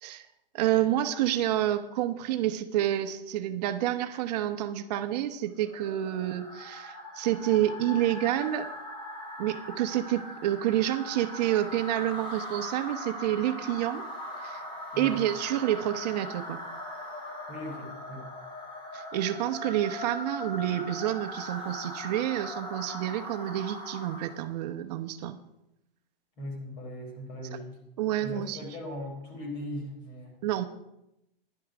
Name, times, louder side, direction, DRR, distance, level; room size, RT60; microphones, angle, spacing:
voice 1, 0.5-8.7 9.4-14.0 14.4-14.6 15.0-16.6 18.9-25.4 28.0-28.6 30.4-30.6, right 12 dB, 45° right, 8 dB, 0.9 m, -29 dB
sound 1, 5.6-24.5, left 1 dB, 15° left, 2.2 m, -40 dB
voice 2, 17.5-18.2 26.4-27.8 28.2-30.4, left 1 dB, 35° left, 2 dB, 4.0 m, -39 dB
12.5 x 11.0 x 5.0 m, 0.86 s
hypercardioid pair, 140°, 29 cm